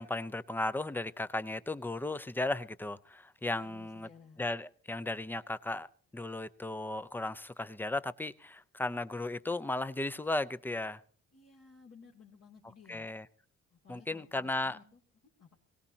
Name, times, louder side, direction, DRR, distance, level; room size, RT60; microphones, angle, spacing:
voice 1, 0.0-4.1 4.4-11.0 12.9-13.3 13.9-14.8, left 2 dB, 5° left, 0.6 m, -35 dB
voice 2, 3.6-4.5 11.3-13.1 13.7-15.6, left 6 dB, 55° left, 2.6 m, -57 dB
22.0 x 17.5 x 2.8 m
cardioid pair, 90°, 30 cm